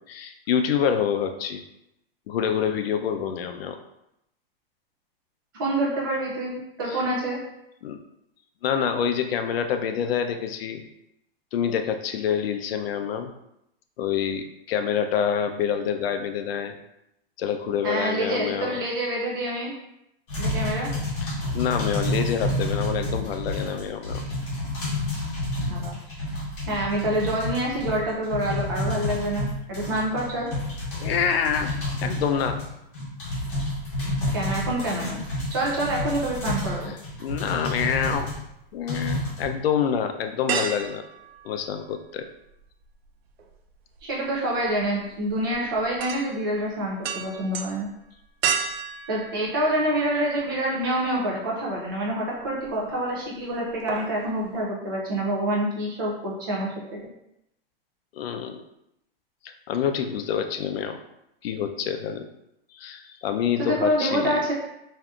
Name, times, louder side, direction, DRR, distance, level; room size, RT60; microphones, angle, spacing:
voice 1, 0.0-1.6 2.3-3.8 6.9-7.0 7.8-8.0 8.6-10.8 11.5-13.3 14.0-16.8 17.4-18.8 21.2-24.2 31.0-31.7 32.0-32.6 37.2-38.3 38.7-41.1 41.4-42.3 58.1-58.6 59.4-61.0 61.4-62.3 62.7-64.4, left 8 dB, 75° left, 7 dB, 0.5 m, -27 dB
voice 2, 5.5-7.4 17.8-19.7 20.4-20.9 25.7-26.2 26.7-30.5 34.3-35.2 35.5-36.9 44.0-47.9 49.1-57.0 63.6-64.5, right 1 dB, 25° right, -3 dB, 0.4 m, -27 dB
sound 1, 20.3-38.4 38.9-39.5, left 1 dB, 25° left, 1.1 m, -29 dB
sound 2, 38.6-38.8 39.3-39.4 40.5-42.2 42.5-50.4 50.8-50.9 52.4-52.9 53.2-53.4 53.7-54.2 54.6-54.7, right 6 dB, 85° right, 0.5 m, -33 dB
3.6 x 2.7 x 2.3 m, 0.83 s
supercardioid pair, 170°, 30 cm